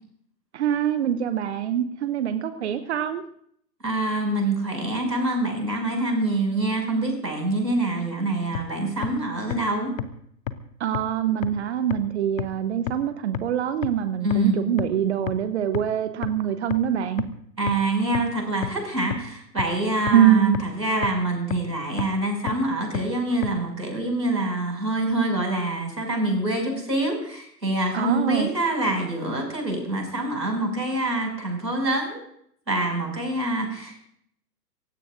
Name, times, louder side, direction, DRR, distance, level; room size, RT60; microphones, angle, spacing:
voice 1, 0.5-3.2 10.8-17.2 20.1-20.6 27.9-28.5, right 10 dB, 40° right, 11 dB, 1.0 m, -24 dB
voice 2, 3.8-9.9 14.2-14.6 17.6-32.2 32.7-34.1, right 2 dB, 90° right, 2 dB, 6.5 m, -25 dB
sound 1, 8.5-8.6 9.0-9.1 9.5-9.6 10.0-10.1 10.5-10.6 10.9-11.0 11.4-11.5 11.9-12.0 12.4-12.5 12.9-13.0 13.3-13.4 13.8-13.9 14.3-14.4 14.8-14.9 15.3-15.4 15.7-15.8 16.2-16.3 16.7-16.8 17.2-17.3 17.7-17.8 18.1-18.2 18.6-18.7 19.1-19.2 19.6-19.7 20.1-20.2 20.5-20.6 21.0-21.1 21.5-21.6 22.0-22.1 22.5-22.6 22.9-23.0 23.4-23.5, left 13 dB, 25° left, 0.6 m, -28 dB
26.5 x 16.5 x 2.6 m, 0.68 s
figure-of-eight pair, 120°, 50 cm